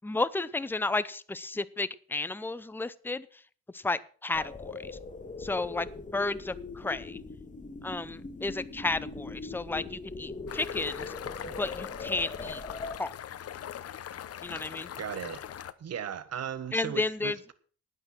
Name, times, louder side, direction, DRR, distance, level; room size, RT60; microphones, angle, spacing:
voice 1, 0.0-3.3 3.7-5.0 5.4-7.2 7.8-11.1 11.6-12.6 13.0-13.2 14.4-14.9 16.7-17.4, left 3 dB, 5° left, 0.7 m, -32 dB
sound 1, 4.3-13.0, left 3 dB, 25° left, 1.6 m, -40 dB
sound 2, 10.5-15.7, left 10 dB, 50° left, 0.9 m, -41 dB
voice 2, 15.0-15.4 15.8-17.5, right 8 dB, 55° right, 1.5 m, -37 dB
11.5 x 9.3 x 6.1 m
cardioid pair, 90°, 30 cm